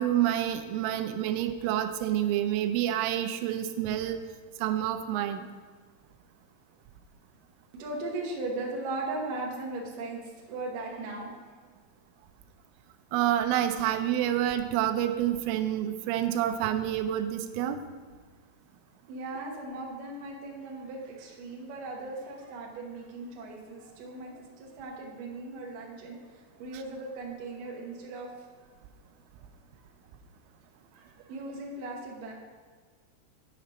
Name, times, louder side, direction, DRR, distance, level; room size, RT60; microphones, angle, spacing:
voice 1, 0.0-4.2 4.6-5.5 13.1-17.8, right 11 dB, 90° right, 7 dB, 3.1 m, -28 dB
voice 2, 7.7-11.3 19.1-28.3 30.9-32.3, right 2 dB, 70° right, -1 dB, 2.2 m, -38 dB
10.0 x 5.1 x 4.1 m, 1.5 s
omnidirectional pair, 5.5 m